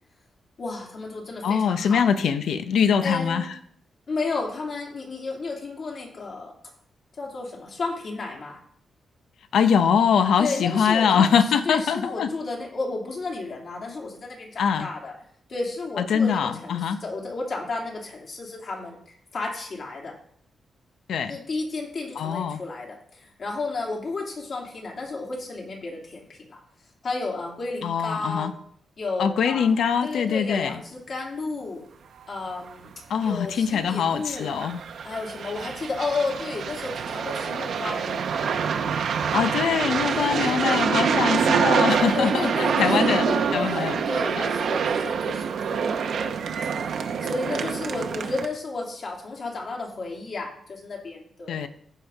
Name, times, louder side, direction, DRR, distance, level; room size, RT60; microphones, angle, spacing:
voice 1, 0.6-2.0 3.0-3.4 4.1-6.5 7.2-8.6 10.4-11.3 11.6-15.1 15.5-20.1 21.3-26.6 27.0-28.6 29.0-29.7 30.0-31.8 32.3-32.9 33.2-34.5 35.0-38.5 39.3-39.7 40.1-40.8 42.1-46.4 47.2-51.6, left 3 dB, 55° left, -2 dB, 2.9 m, -32 dB
voice 2, 1.4-3.6 9.5-12.3 14.6-14.9 16.0-17.0 21.1-21.3 22.2-22.6 27.8-28.5 29.2-30.8 33.1-34.8 39.3-43.3 43.5-44.0 44.4-44.5 51.5-51.7, left 7 dB, 90° left, 9 dB, 0.8 m, -23 dB
sound 1, 32.7-32.8 33.2-33.3 34.4-48.5, right 6 dB, 75° right, 0.8 m, -26 dB
15.0 x 5.5 x 3.5 m, 0.64 s
cardioid pair, 115°, 0 cm